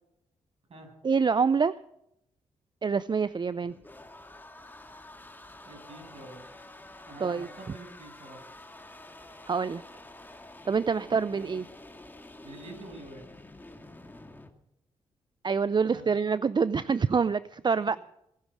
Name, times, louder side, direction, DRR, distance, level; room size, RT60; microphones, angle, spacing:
voice 1, 1.0-1.7 2.8-3.7 7.2-7.5 9.5-9.8 10.7-11.6 15.4-18.0, right 5 dB, 40° right, 16 dB, 0.5 m, -26 dB
sound 1, 3.3-14.5, left 2 dB, 15° left, 2.2 m, -49 dB
voice 2, 5.6-6.4 7.1-8.5 11.0-11.5 12.4-13.3 15.9-16.0, right 2 dB, 60° right, 2 dB, 7.2 m, -46 dB
19.0 x 10.5 x 6.3 m, 0.80 s
supercardioid pair, 45°, 12 cm